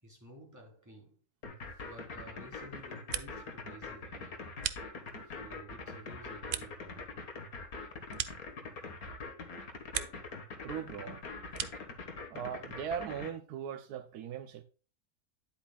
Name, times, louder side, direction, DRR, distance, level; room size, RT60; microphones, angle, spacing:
voice 1, 0.0-1.2 1.8-4.6 5.2-7.2, right 1 dB, 10° right, 3.9 m, -53 dB
sound 1, 1.4-13.3, left 3 dB, 70° left, 2.0 m, -43 dB
sound 2, 2.8-3.6 3.9-5.4 5.8-9.1 9.4-10.4 10.7-12.0, right 8 dB, 55° right, 0.6 m, -42 dB
voice 2, 10.6-11.2 12.3-14.6, right 8 dB, 80° right, 1.3 m, -39 dB
10.5 x 8.2 x 2.3 m
omnidirectional pair, 1.6 m